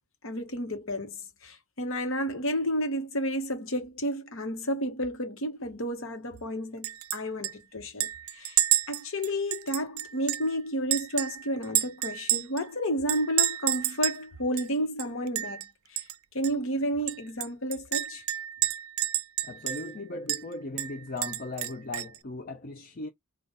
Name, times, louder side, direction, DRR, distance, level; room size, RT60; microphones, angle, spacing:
voice 1, 0.2-8.6 8.9-15.6 15.9-16.0 16.3-18.2, equal, 65° left, 1.2 m, -31 dB
Chink clink, 6.8-7.2 7.4-7.5 8.0-10.5 10.9-12.6 13.1-14.2 14.6-14.7 15.0-15.7 16.0-16.1 16.4-16.5 17.1-20.0 20.3-20.4 20.8-22.2, right 14 dB, 85° right, 0.4 m, -29 dB
voice 2, 19.4-23.1, left 2 dB, 45° left, 0.6 m, -38 dB
3.9 x 2.4 x 3.9 m
head